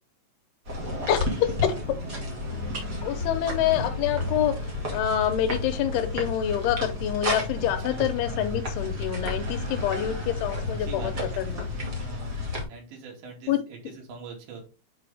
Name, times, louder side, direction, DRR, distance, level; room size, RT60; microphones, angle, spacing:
sound 1, 0.7-12.6, left 2 dB, 55° right, 1.0 m, -31 dB
voice 1, 0.8-1.7 3.0-11.7 13.5-13.6, left 10 dB, 75° left, 7 dB, 2.5 m, -27 dB
voice 2, 10.8-11.1 12.0-14.7, right 4 dB, 75° right, 0 dB, 4.5 m, -43 dB
7.6 x 4.8 x 3.4 m, 0.33 s
omnidirectional pair, 5.3 m